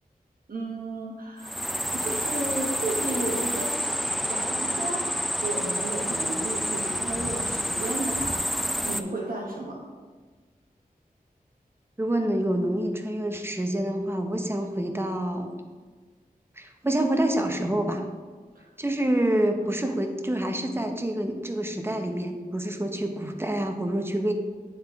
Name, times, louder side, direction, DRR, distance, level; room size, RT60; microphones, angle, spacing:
voice 1, 0.5-1.5 1.9-9.8 18.5-18.7, right 2 dB, 70° right, -1 dB, 1.0 m, -33 dB
sound 1, 1.4-9.0, equal, ahead, 0.3 m, -29 dB
voice 2, 12.0-15.5 16.6-18.0 18.8-24.3, right 1 dB, 15° right, 5 dB, 0.8 m, -27 dB
8.7 x 3.7 x 3.5 m, 1.4 s
wide cardioid pair, 50°, 16 cm